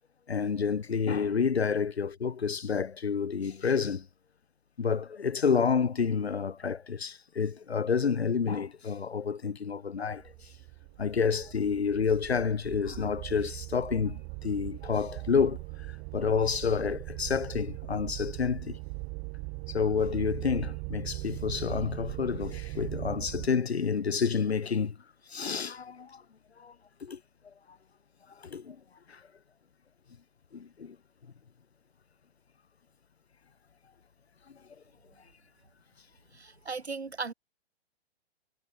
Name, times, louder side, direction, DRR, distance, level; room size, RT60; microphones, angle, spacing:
voice 1, 0.3-4.1 4.8-10.2 11.0-15.6 16.1-18.8 19.7-25.0 25.3-26.2 26.6-26.7 27.0-27.2 28.4-28.8 29.1-29.2 30.5-31.0, left 6 dB, 70° left, 2.4 m, -29 dB
sound 1, 10.1-23.5, right 36 dB, 25° right, 1.1 m, -40 dB
voice 2, 36.3-37.3, right 4 dB, 75° right, 4.5 m, -37 dB
figure-of-eight pair, 120°, 33 cm